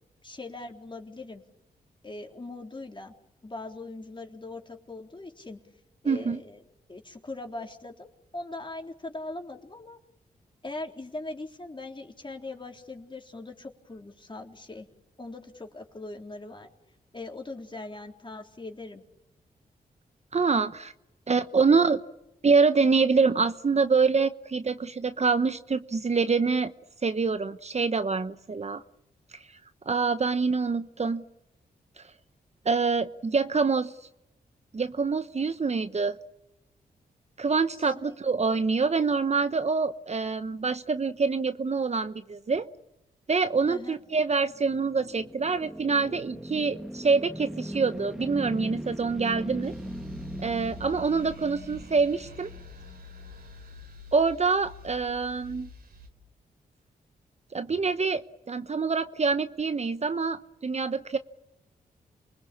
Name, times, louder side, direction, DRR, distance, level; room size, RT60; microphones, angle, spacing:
voice 1, 0.2-1.4 2.0-3.1 3.4-5.6 6.0-6.6 6.9-8.1 8.3-10.0 10.6-14.9 15.2-16.7 17.1-19.0 37.8-38.1 43.7-44.0, left 2 dB, 30° left, 2 dB, 3.8 m, -40 dB
voice 2, 6.0-6.4 20.3-20.9 21.3-22.0 22.4-26.7 27.0-28.8 29.3-29.5 29.9-31.2 32.6-33.9 34.7-36.2 37.4-42.7 43.3-49.7 50.4-52.5 54.1-55.7 57.5-61.2, right 4 dB, 40° right, 11 dB, 1.0 m, -26 dB
sound 1, 44.2-53.4, right 1 dB, 5° right, 1.9 m, -39 dB
sound 2, 49.6-56.1, left 3 dB, 75° right, 3.6 m, -47 dB
28.0 x 20.5 x 8.5 m, 0.91 s
cardioid pair, 50°, 17 cm